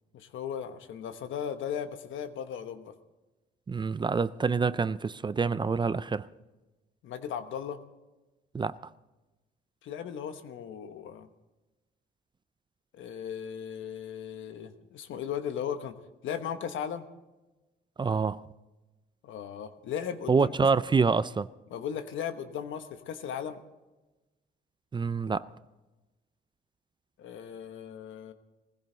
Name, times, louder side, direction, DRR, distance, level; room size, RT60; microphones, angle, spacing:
voice 1, 0.1-2.9 7.0-7.8 9.8-11.3 12.9-15.9 16.2-17.1 19.2-20.5 21.7-23.6 27.2-28.3, left 8 dB, 75° left, 1.2 m, -37 dB
voice 2, 3.7-6.3 8.5-8.8 18.0-18.4 20.3-21.5 24.9-25.5, right 5 dB, 25° right, 0.4 m, -26 dB
19.5 x 15.5 x 3.9 m
cardioid pair, 90°, 20 cm